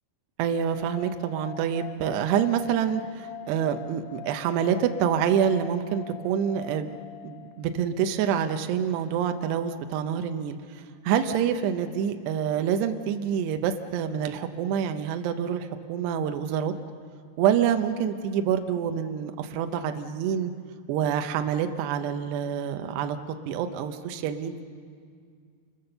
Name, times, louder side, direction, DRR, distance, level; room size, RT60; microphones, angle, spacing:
voice 1, 0.4-6.9 7.2-16.7 17.4-20.5 20.9-24.6, right 8 dB, 75° right, 7 dB, 2.7 m, -27 dB
sound 1, 0.7-7.8, left 12 dB, 65° left, 2.4 m, -43 dB
28.5 x 22.0 x 6.8 m, 2.1 s
omnidirectional pair, 5.6 m